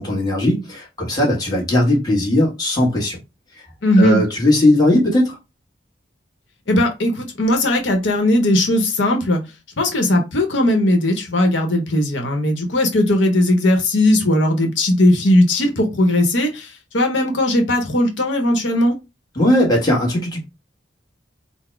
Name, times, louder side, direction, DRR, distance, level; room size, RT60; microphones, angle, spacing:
voice 1, 0.0-3.2 4.0-5.4 19.3-20.4, left 1 dB, 20° left, 1.4 m, -18 dB
voice 2, 3.8-4.2 6.7-9.4 9.8-19.0, left 1 dB, 75° left, 0.9 m, -18 dB
4.0 x 2.0 x 4.5 m
head